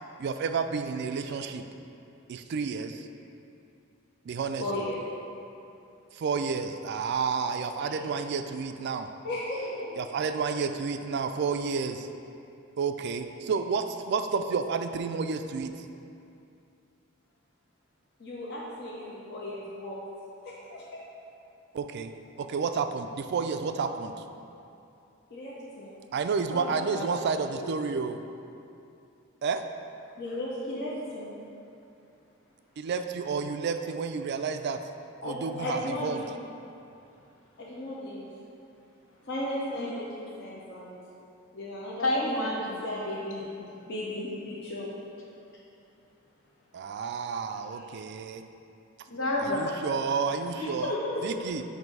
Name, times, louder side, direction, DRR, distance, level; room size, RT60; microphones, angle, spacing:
voice 1, 0.2-1.6 2.3-3.1 4.3-4.9 6.1-9.1 10.0-12.1 12.8-15.7 21.7-22.1 22.4-24.2 26.1-28.2 29.4-29.6 32.8-34.8 35.2-36.2 46.7-48.4 49.4-50.9 51.2-51.6, right 5 dB, 55° right, 8 dB, 0.3 m, -30 dB
voice 2, 4.6-5.1 7.8-8.1 9.2-10.0 18.2-20.0 20.4-21.0 25.3-25.9 26.5-27.2 27.5-27.9 30.2-31.3 35.2-36.3 37.6-38.3 39.2-41.0 41.5-42.1 42.6-43.5 43.7-44.9, left 1 dB, 55° left, -6 dB, 0.8 m, -36 dB
voice 3, 42.0-42.8 49.1-49.7 50.5-51.2, left 1 dB, 85° left, -3 dB, 1.1 m, -29 dB
7.7 x 2.7 x 5.3 m, 2.7 s
head